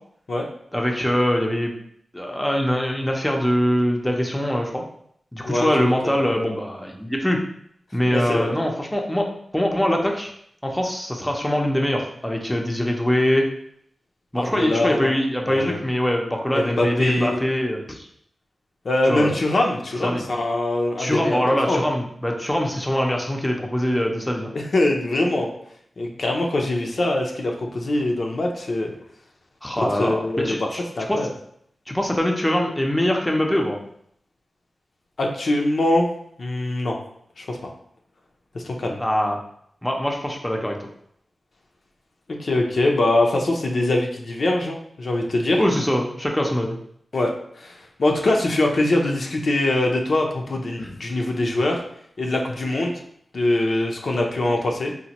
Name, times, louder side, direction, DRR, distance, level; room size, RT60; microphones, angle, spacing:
voice 1, 0.7-1.7 2.1-4.8 5.3-7.4 7.9-9.3 9.5-10.3 10.6-13.5 14.3-18.1 19.1-19.4 20.0-20.2 21.0-24.5 29.6-30.8 31.1-31.3 31.9-33.8 39.0-39.4 39.8-40.8 45.6-46.8 50.8-50.9, equal, 10° left, 1 dB, 0.5 m, -23 dB
voice 2, 5.4-6.4 8.1-8.6 14.4-15.1 15.4-15.8 16.5-17.4 18.8-21.8 24.5-25.5 26.0-28.9 29.9-30.7 31.0-31.3 35.2-36.1 36.4-37.0 37.4-37.7 38.5-39.0 42.4-45.6 47.1-47.3 47.5-51.8 52.2-52.9 53.3-54.9, left 2 dB, 65° left, 1 dB, 0.5 m, -23 dB
4.0 x 2.1 x 2.9 m, 0.68 s
wide cardioid pair, 75°, 0 cm